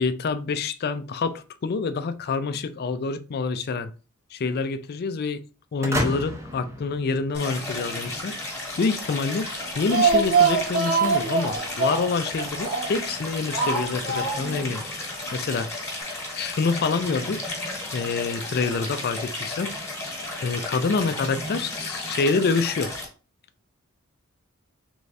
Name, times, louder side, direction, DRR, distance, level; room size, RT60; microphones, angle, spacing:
voice 1, 0.0-3.9 4.3-5.4 5.7-8.4 8.8-9.5 9.8-14.8 15.3-15.7 16.3-17.5 17.9-19.7 20.4-23.0, left 4 dB, 45° left, 0.4 m, -27 dB
sound 1, 5.8-7.8, equal, 15° right, 0.7 m, -30 dB
Stream, 7.3-23.1, left 2 dB, 15° left, 1.3 m, -33 dB
Speech, 9.6-13.1 13.5-14.7 14.9-15.0 15.3-15.4, right 5 dB, 75° right, 1.3 m, -24 dB
3.4 x 3.2 x 2.6 m
head